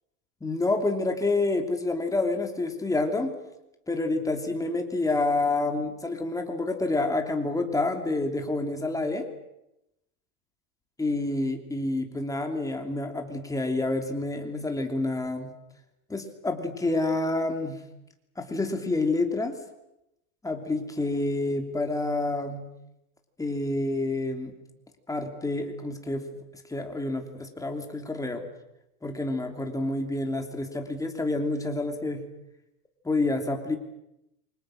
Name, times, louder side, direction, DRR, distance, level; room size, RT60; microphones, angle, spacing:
voice 1, 0.4-3.3 3.9-9.3 11.0-15.5 16.1-17.8 18.4-19.6 20.4-22.7 23.4-24.5 25.1-26.3 26.7-28.5 29.0-32.2 33.0-33.8, left 2 dB, 5° left, 4 dB, 3.0 m, -28 dB
28.0 x 25.5 x 6.5 m, 0.88 s
supercardioid pair, 145°, 45 cm